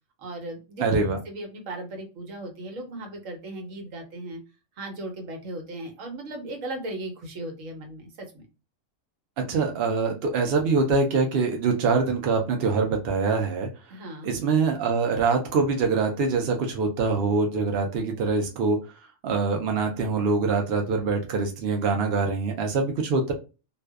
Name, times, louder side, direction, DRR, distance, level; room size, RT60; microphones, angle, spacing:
voice 1, 0.2-0.8 1.3-4.4 4.8-8.5 13.9-14.3, right 1 dB, 80° right, 4 dB, 1.2 m, -37 dB
voice 2, 0.8-1.2 9.4-13.7 14.2-18.9 19.2-23.3, right 4 dB, 60° right, 2 dB, 0.7 m, -24 dB
2.5 x 2.2 x 2.2 m, 0.30 s
omnidirectional pair, 1.3 m